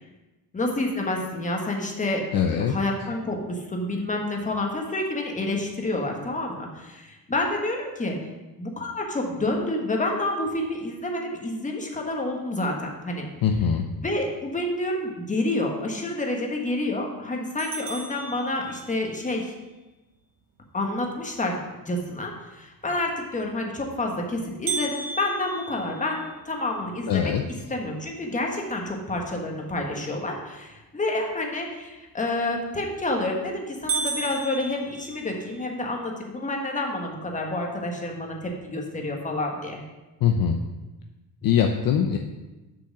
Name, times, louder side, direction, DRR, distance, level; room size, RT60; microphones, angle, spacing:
voice 1, 0.5-8.2 8.6-13.3 14.0-19.5 20.7-21.6 21.8-27.3 27.7-39.8 41.4-41.5, left 2 dB, 15° left, 1 dB, 1.5 m, -29 dB
voice 2, 2.3-2.7 13.4-13.9 27.1-27.4 40.2-40.6 41.4-42.2, left 8 dB, 50° left, 4 dB, 0.7 m, -22 dB
sound 1, 17.6-19.2 24.7-26.8 27.3-27.4 27.9-28.0 28.7-29.0 32.6-33.0 33.4-33.5 33.9-35.6, right 4 dB, 50° right, 1.1 m, -33 dB
7.0 x 5.3 x 6.1 m, 1.1 s
cardioid pair, 115°, 44 cm